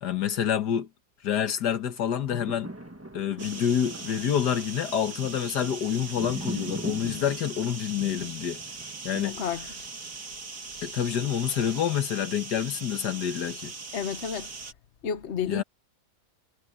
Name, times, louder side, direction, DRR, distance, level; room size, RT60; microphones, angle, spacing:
voice 1, 0.0-0.9 1.2-2.7 3.1-8.6 9.0-9.4 10.8-13.7 15.5-15.6, left 9 dB, 85° left, 1.9 m, -27 dB
sound 1, 2.0-10.3 10.8-10.9, right 1 dB, 10° right, 1.4 m, -41 dB
sound 2, 3.4-14.7, right 4 dB, 70° right, 3.3 m, -40 dB
voice 2, 9.1-9.7 13.9-14.5 15.0-15.6, left 7 dB, 45° left, 1.3 m, -31 dB
omnidirectional pair, 1.7 m